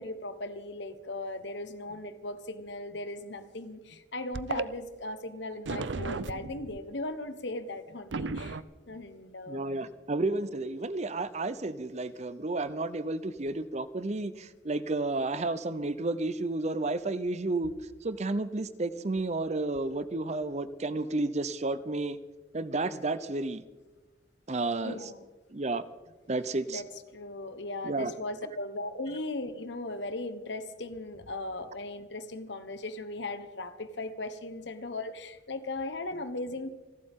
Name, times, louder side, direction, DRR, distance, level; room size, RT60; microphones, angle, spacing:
voice 1, 0.0-8.6 8.9-9.9 24.8-25.2 26.7-26.9 27.1-36.7, left 2 dB, 70° left, 10 dB, 1.3 m, -38 dB
sound 1, 4.3-4.6 5.6-6.8 8.1-8.6, right 4 dB, 80° right, 0.6 m, -34 dB
voice 2, 9.5-17.7 18.0-22.2 22.5-23.6 24.5-25.1 25.5-25.8 26.3-26.8 27.8-28.1, right 2 dB, 35° right, 14 dB, 0.7 m, -31 dB
28.5 x 12.0 x 3.7 m, 1.2 s
head